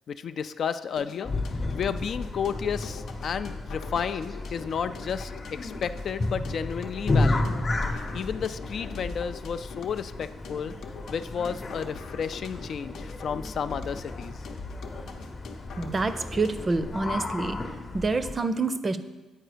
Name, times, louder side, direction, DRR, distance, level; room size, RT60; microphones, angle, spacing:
voice 1, 0.1-7.5 7.9-10.7 11.1-14.4, left 7 dB, 60° left, 11 dB, 0.3 m, -32 dB
sound 1, 1.0-17.0, left 4 dB, 75° left, 0.7 m, -44 dB
sound 2, 1.2-18.3, left 2 dB, 35° left, 0.7 m, -33 dB
voice 2, 15.8-17.6 17.9-19.0, right 3 dB, 30° right, 11 dB, 0.5 m, -27 dB
9.0 x 4.5 x 5.0 m, 1.2 s
cardioid pair, 90°, 0 cm